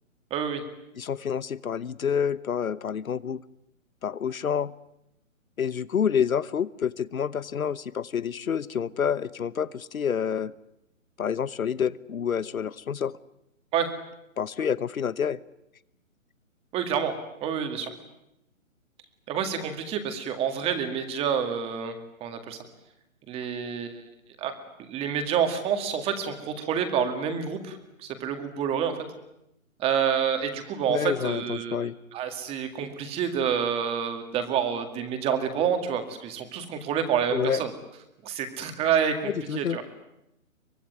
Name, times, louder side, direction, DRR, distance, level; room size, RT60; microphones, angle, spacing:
voice 1, 0.3-0.6 13.7-13.9 16.7-17.1 17.4-17.9 19.3-22.6 23.3-24.0 24.4-29.0 29.8-37.7 38.2-39.8, right 7 dB, 15° right, 7 dB, 2.1 m, -28 dB
voice 2, 1.0-3.4 4.0-4.7 5.6-10.5 11.2-13.1 14.4-15.4 30.9-31.9 37.3-37.6 39.2-39.8, left 7 dB, 85° left, 18 dB, 1.1 m, -28 dB
24.0 x 21.5 x 9.4 m, 0.84 s
hypercardioid pair, 155°, 41 cm